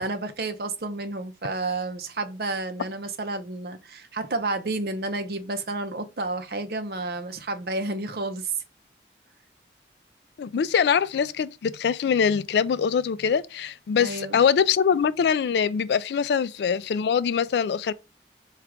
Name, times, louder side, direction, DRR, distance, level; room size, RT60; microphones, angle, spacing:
voice 1, 0.0-8.5 14.0-14.4, right 2 dB, 60° right, 0.6 m, -31 dB
voice 2, 10.4-17.9, left 7 dB, 70° left, 0.3 m, -23 dB
4.5 x 2.4 x 3.5 m
head